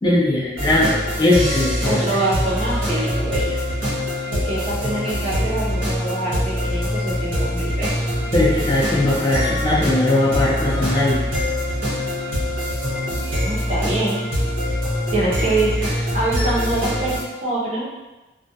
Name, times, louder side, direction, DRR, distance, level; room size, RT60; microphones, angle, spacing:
voice 1, 0.0-0.9 1.2-2.0 8.3-11.2, left 1 dB, 20° left, -7 dB, 0.4 m, -19 dB
sound 1, 0.6-17.2, left 1 dB, 80° right, 1.0 m, -24 dB
voice 2, 1.8-3.6 4.3-8.0 13.1-14.2 15.1-17.9, right 2 dB, 35° right, -7 dB, 0.6 m, -25 dB
2.3 x 2.1 x 2.7 m, 1.1 s
head